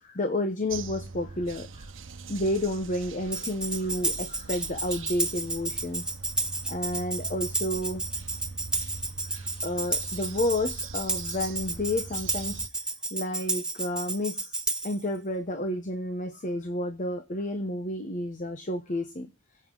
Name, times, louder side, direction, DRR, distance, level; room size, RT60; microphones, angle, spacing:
voice 1, 0.0-1.9 2.3-6.1 6.7-8.0 9.3-12.6 13.1-19.3, left 1 dB, 40° left, 7 dB, 1.0 m, -31 dB
sound 1, 0.7-12.7, right 4 dB, 80° right, 0.9 m, -42 dB
Tambourine, 3.3-15.0, right 2 dB, 5° right, 1.0 m, -32 dB
22.5 x 7.9 x 3.9 m, 0.30 s
head